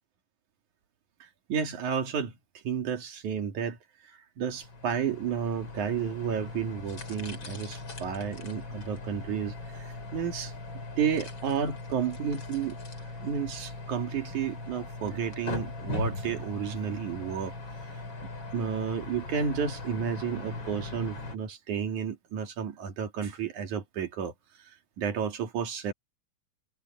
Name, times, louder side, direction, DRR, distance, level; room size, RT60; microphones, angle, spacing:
voice 1, 1.5-2.4 2.6-3.8 4.1-12.8 13.2-17.5 18.2-24.3 25.0-25.9, right 7 dB, 65° right, 3.7 m, -32 dB
sound 1, 4.5-21.4, left 3 dB, 35° left, 3.9 m, -39 dB
omnidirectional pair, 3.8 m